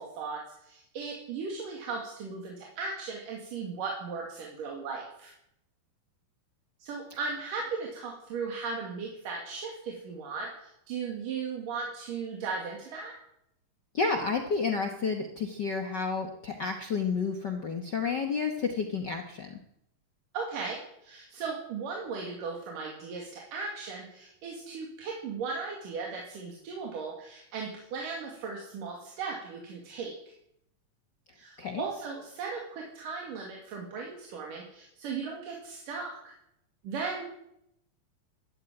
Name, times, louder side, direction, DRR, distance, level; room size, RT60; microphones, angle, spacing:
voice 1, 0.0-5.3 6.8-13.1 20.3-20.8 21.0-30.1 31.3-36.3 36.8-37.3, right 4 dB, 80° right, -1 dB, 3.9 m, -37 dB
voice 2, 13.9-19.6 31.6-31.8, left 5 dB, 60° left, 4 dB, 1.1 m, -30 dB
13.0 x 12.5 x 9.0 m, 0.78 s
omnidirectional pair, 3.8 m